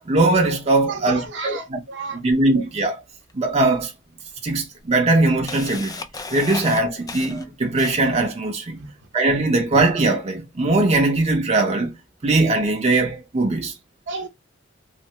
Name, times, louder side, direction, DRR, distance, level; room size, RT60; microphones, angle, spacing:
voice 1, 0.1-1.8 2.1-3.0 3.3-3.9 4.4-6.0 6.3-8.8 9.1-11.9 12.2-13.7, right 2 dB, 35° right, 0.5 m, -20 dB
voice 2, 0.9-2.2 8.8-8.9 14.1-14.3, right 4 dB, 65° right, 0.8 m, -32 dB
Camera, 3.3-3.4 4.3-4.4 4.8-8.3, left 4 dB, 20° left, 0.3 m, -34 dB
3.2 x 2.4 x 2.8 m
head